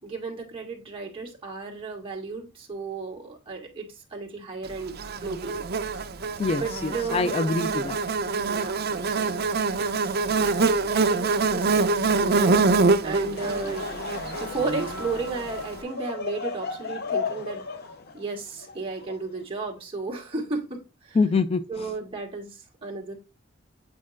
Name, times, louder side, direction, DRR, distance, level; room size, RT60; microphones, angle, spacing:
voice 1, 0.0-5.6 6.5-7.3 8.3-9.4 9.8-12.6 13.0-13.9 14.4-17.6 18.1-21.2 21.7-23.1, right 3 dB, 25° right, 1.9 m, -34 dB
Buzz, 5.0-15.4, right 4 dB, 50° right, 0.6 m, -25 dB
voice 2, 6.4-8.0 21.1-21.9, left 4 dB, 30° left, 0.3 m, -25 dB
sound 1, 13.1-18.0, left 2 dB, 70° left, 3.5 m, -46 dB
Laughter / Crowd, 13.2-19.6, left 5 dB, 50° left, 0.7 m, -35 dB
8.5 x 4.6 x 2.5 m
head